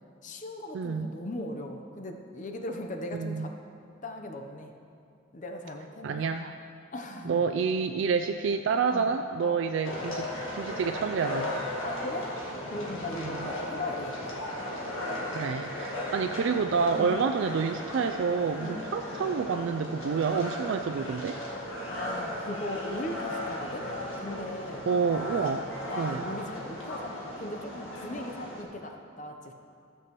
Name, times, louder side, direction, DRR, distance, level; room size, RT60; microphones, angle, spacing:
voice 1, 0.2-3.5 4.0-4.7 5.3-6.3 6.9-7.4 8.9-9.1 9.4-9.6 11.8-14.4 16.9-17.2 18.6-18.9 21.9-23.9 24.2-24.9 25.9-29.5, left 1 dB, 40° left, 4 dB, 0.7 m, -38 dB
voice 2, 0.7-1.1 3.1-3.5 6.0-6.5 7.2-11.5 13.2-13.5 15.3-21.4 24.9-25.7 26.0-26.2, right 5 dB, 65° right, 6 dB, 0.3 m, -28 dB
sound 1, 9.8-28.6, left 1 dB, 85° left, 1.6 m, -36 dB
15.0 x 7.6 x 3.0 m, 2.5 s
head